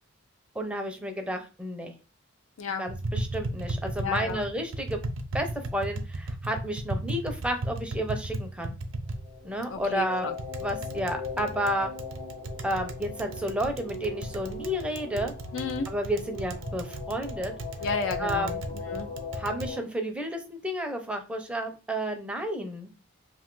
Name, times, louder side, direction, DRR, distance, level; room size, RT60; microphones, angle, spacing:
voice 1, 0.5-1.9 2.8-5.0 5.3-8.7 9.4-10.3 10.6-11.9 12.6-15.3 15.9-17.5 18.2-18.6 19.4-22.9, equal, 5° right, 5 dB, 0.5 m, -31 dB
Tap, 2.9-19.7, right 1 dB, 75° right, 0.5 m, -36 dB
voice 2, 4.0-4.4 9.7-10.3 15.5-15.9 17.8-19.1, left 4 dB, 75° left, 6 dB, 0.5 m, -32 dB
sound 1, 9.1-19.8, left 4 dB, 35° left, 1.0 m, -39 dB
2.6 x 2.4 x 3.6 m, 0.32 s
head